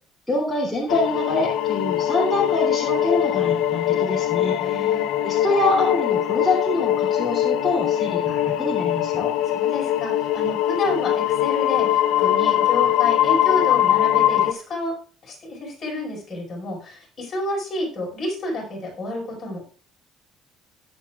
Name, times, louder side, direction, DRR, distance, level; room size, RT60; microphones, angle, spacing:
voice 1, 0.3-4.9 5.2-9.3, left 2 dB, ahead, -7 dB, 3.0 m, -25 dB
sound 1, 0.9-14.5, left 11 dB, 75° left, 0.7 m, -22 dB
voice 2, 4.6-5.1 9.5-14.9 15.2-19.6, left 1 dB, 25° left, -2 dB, 5.0 m, -30 dB
21.0 x 7.6 x 2.4 m, 0.40 s
cardioid pair, 175°, 0 cm